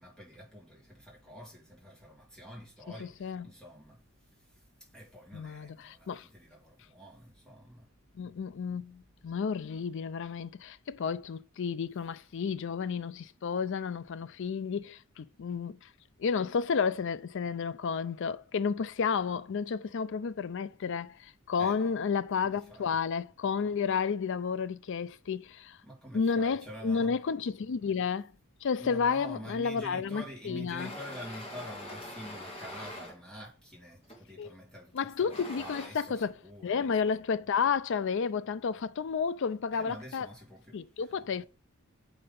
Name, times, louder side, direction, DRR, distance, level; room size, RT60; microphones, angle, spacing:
voice 1, 0.0-4.0 4.9-7.9 21.6-21.9 22.4-23.0 25.8-27.2 28.8-36.8 39.7-41.1, equal, 5° left, 2.3 m, -47 dB
voice 2, 3.0-3.5 5.3-6.3 8.1-15.9 16.2-25.8 26.1-28.3 28.6-30.9 34.4-34.5 34.9-36.3 36.6-40.3 40.7-41.4, left 6 dB, 55° left, 0.4 m, -31 dB
sound 1, 30.8-33.2 34.0-34.3 35.0-35.9, left 1 dB, 25° left, 2.1 m, -43 dB
7.6 x 3.9 x 5.2 m
head